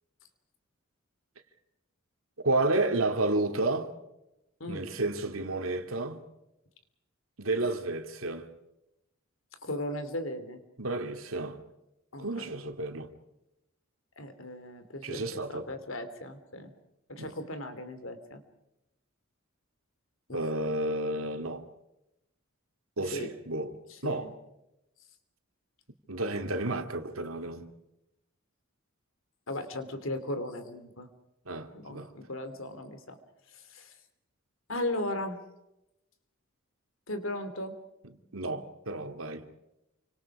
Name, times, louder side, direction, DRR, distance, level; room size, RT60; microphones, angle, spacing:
voice 1, 2.4-3.9 4.7-6.2 7.4-8.5 10.8-11.6 12.2-13.1 15.0-15.7 17.2-17.3 20.3-21.7 23.0-23.7 24.0-24.3 26.1-27.7 31.5-32.1 38.0-39.5, right 2 dB, 80° right, 2.5 m, -31 dB
voice 2, 9.6-10.6 12.1-12.5 14.2-16.7 17.1-18.4 20.3-20.5 23.0-23.3 23.9-24.3 29.5-31.1 31.7-33.2 33.5-33.9 34.7-35.4 37.1-37.8, left 1 dB, 70° left, 3.1 m, -37 dB
29.0 x 25.5 x 4.9 m
head